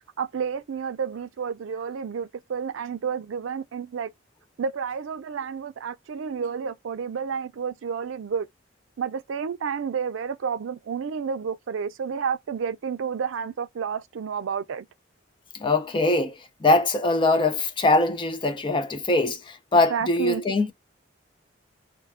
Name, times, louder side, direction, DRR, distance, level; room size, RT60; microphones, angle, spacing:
voice 1, 0.2-4.1 4.6-8.5 9.0-14.9 19.9-20.4, right 6 dB, 90° right, 0.4 m, -30 dB
voice 2, 15.5-20.7, left 2 dB, 25° left, 0.4 m, -22 dB
2.6 x 2.3 x 3.4 m
head